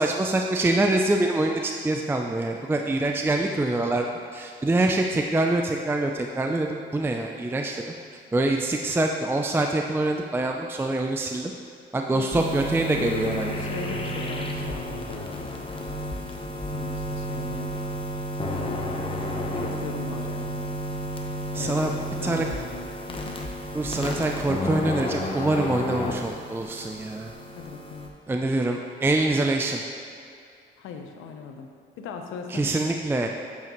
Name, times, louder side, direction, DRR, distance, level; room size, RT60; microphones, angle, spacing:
voice 1, 0.0-4.1 4.3-7.9 8.3-11.5 11.9-13.5 21.5-21.9 22.2-22.5 23.7-27.3 28.3-29.8 32.5-33.3, right 2 dB, 10° right, 3 dB, 0.4 m, -25 dB
voice 2, 12.1-12.6 13.0-17.8 18.4-20.6 21.5-21.9 22.2-23.3 27.6-28.1 30.8-31.7 32.0-32.8, left 5 dB, 90° left, 4 dB, 0.8 m, -38 dB
sound 1, 12.3-28.1, left 1 dB, 25° left, 0.9 m, -32 dB
8.4 x 6.9 x 3.0 m, 2.5 s
cardioid pair, 90°, 20 cm